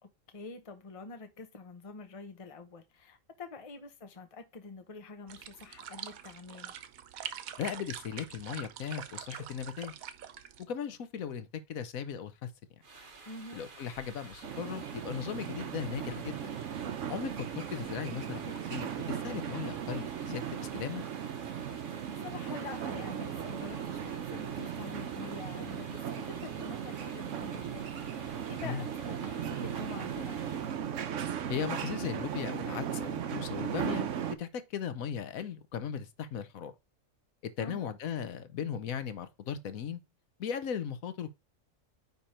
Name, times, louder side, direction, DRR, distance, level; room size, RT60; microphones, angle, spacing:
voice 1, 0.0-6.7 13.3-13.6 21.7-30.4 37.6-37.9, left 3 dB, 25° left, 0.9 m, -46 dB
sound 1, 5.3-10.6, right 9 dB, 85° right, 1.2 m, -44 dB
voice 2, 7.6-9.9 10.7-12.5 13.5-16.4 17.1-21.0 28.6-28.8 31.5-34.1 34.4-36.7 37.4-40.0 40.4-41.3, left 8 dB, 80° left, 1.3 m, -37 dB
sound 2, 12.8-30.9, right 3 dB, 40° right, 1.4 m, -52 dB
sound 3, 14.4-34.3, right 8 dB, 65° right, 1.0 m, -37 dB
9.5 x 3.5 x 4.4 m
omnidirectional pair, 1.4 m